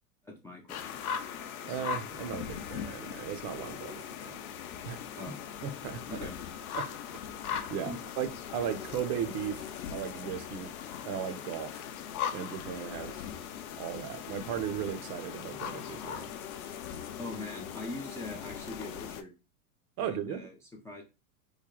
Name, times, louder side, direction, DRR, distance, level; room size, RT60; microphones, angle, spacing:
voice 1, 0.2-1.1 5.1-5.7 6.1-6.4 7.9-8.0 17.2-19.3 20.0-20.6 20.8-21.0, left 2 dB, 5° left, 0.4 m, -42 dB
sound 1, 0.7-19.2, left 8 dB, 80° left, 0.7 m, -40 dB
voice 2, 1.7-4.4 4.8-5.3 5.6-6.0 6.7-6.9 7.7-10.7 11.0-11.8 12.3-13.3 13.8-16.3 20.0-20.5, right 9 dB, 45° right, 0.6 m, -37 dB
3.2 x 2.2 x 3.6 m
hypercardioid pair, 115°, 42 cm